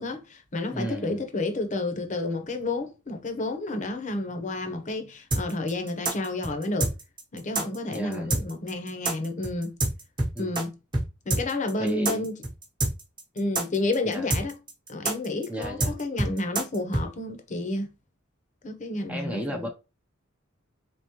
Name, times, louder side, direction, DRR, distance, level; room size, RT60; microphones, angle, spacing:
voice 1, 0.0-6.9 7.3-9.8 10.4-10.7 11.3-12.4 13.4-14.5 14.9-17.9 18.6-19.7, left 2 dB, 40° left, 0.8 m, -30 dB
voice 2, 0.7-1.2 7.9-8.4 10.3-10.6 11.8-12.2 14.1-14.3 15.5-16.0 19.1-19.7, equal, 5° right, 0.6 m, -34 dB
sound 1, 5.3-10.6 10.9-11.0 11.3-17.0, right 2 dB, 25° right, 1.0 m, -27 dB
3.7 x 3.6 x 3.0 m
head